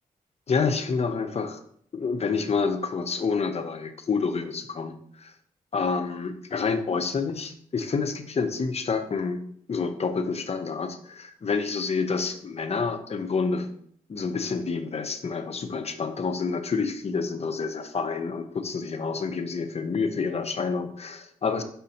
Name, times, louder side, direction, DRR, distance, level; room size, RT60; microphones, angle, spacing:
voice 1, 0.5-1.6 1.9-5.3 5.7-13.7 14.1-21.6, left 5 dB, 45° left, 7 dB, 0.8 m, -28 dB
6.3 x 5.6 x 2.8 m, 0.64 s
cardioid pair, 80°, 14 cm